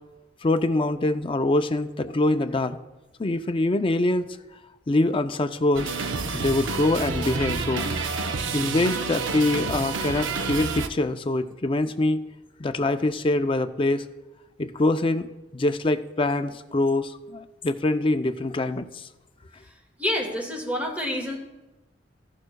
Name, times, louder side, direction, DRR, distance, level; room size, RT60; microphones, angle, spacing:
voice 1, 0.4-2.8 3.2-4.3 4.9-5.9 6.3-7.9 8.5-12.3 12.6-14.0 14.6-15.3 15.5-19.1, left 2 dB, 25° left, 8 dB, 0.5 m, -24 dB
sound 1, 5.7-10.9, right 4 dB, 80° right, 0.7 m, -29 dB
voice 2, 19.6-21.4, left 1 dB, 10° right, 0 dB, 1.9 m, -29 dB
14.5 x 11.0 x 2.3 m, 1.1 s
head